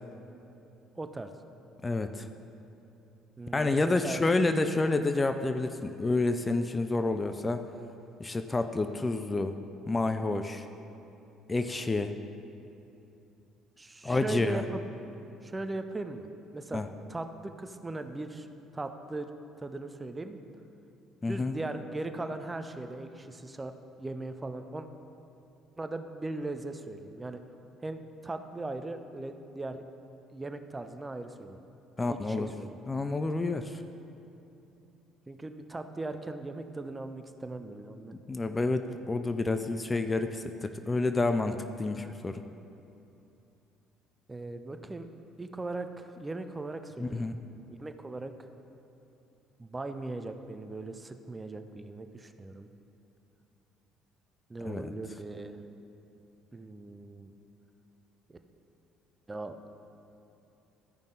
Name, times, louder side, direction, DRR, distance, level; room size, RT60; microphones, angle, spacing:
voice 1, 1.0-1.3 3.4-3.8 4.0-4.2 13.8-14.9 15.4-16.3 16.5-16.8 17.1-18.5 18.7-19.3 19.6-20.4 21.2-23.7 24.0-24.9 25.8-27.4 27.8-29.8 30.3-31.6 32.0-32.8 35.3-38.1 41.9-42.2 44.3-45.1 45.4-47.2 47.7-48.3 49.6-52.7 54.5-55.6 56.5-57.3 58.3-58.4 59.3-59.6, right 2 dB, 20° right, 8 dB, 0.6 m, -38 dB
voice 2, 1.8-2.3 3.5-7.7 8.2-9.5 9.9-10.6 11.5-12.1 14.0-14.7 16.7-16.9 21.2-21.6 32.0-32.5 32.9-33.8 38.3-42.4 47.0-47.3 54.6-54.9, left 3 dB, 25° left, 8 dB, 0.4 m, -29 dB
14.0 x 5.3 x 3.9 m, 2.8 s
hypercardioid pair, 55°, 0 cm